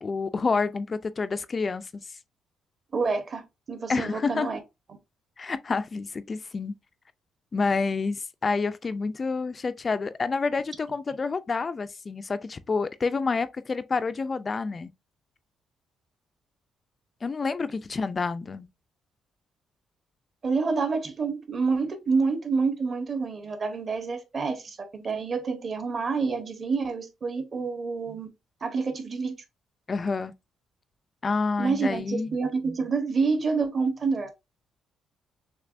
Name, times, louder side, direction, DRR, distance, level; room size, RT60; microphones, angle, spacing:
voice 1, 0.0-1.9 3.9-4.5 5.4-6.7 7.5-14.9 17.2-18.7 29.9-30.3 31.2-32.3, left 4 dB, 25° left, 0.3 m, -28 dB
voice 2, 2.9-4.6 20.4-28.3 28.6-29.4 31.6-34.3, right 4 dB, 35° right, 0.9 m, -28 dB
6.6 x 2.9 x 2.5 m
cardioid pair, 160°, 0 cm